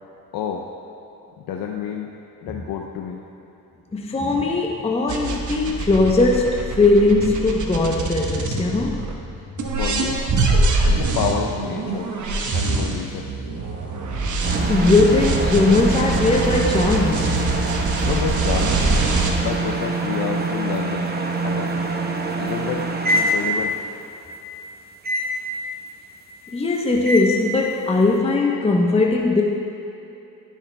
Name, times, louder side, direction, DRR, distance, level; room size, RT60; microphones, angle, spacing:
voice 1, 0.3-0.6 1.4-2.1 2.4-3.2 9.8-10.2 10.9-12.1 12.5-13.3 18.0-18.8 19.4-21.1 21.4-21.8 22.4-22.9 23.1-23.8, left 7 dB, 65° left, 1 dB, 0.6 m, -28 dB
voice 2, 3.9-9.1 14.7-17.4 26.5-29.4, left 3 dB, 15° left, 0 dB, 0.8 m, -19 dB
sound 1, 5.1-9.1 9.6-19.3, right 3 dB, 50° right, 1.1 m, -23 dB
sound 2, 14.4-23.9 25.0-25.4 27.0-27.4, right 2 dB, 25° right, 0.9 m, -25 dB
13.5 x 6.4 x 2.3 m, 2.9 s
supercardioid pair, 65°, 39 cm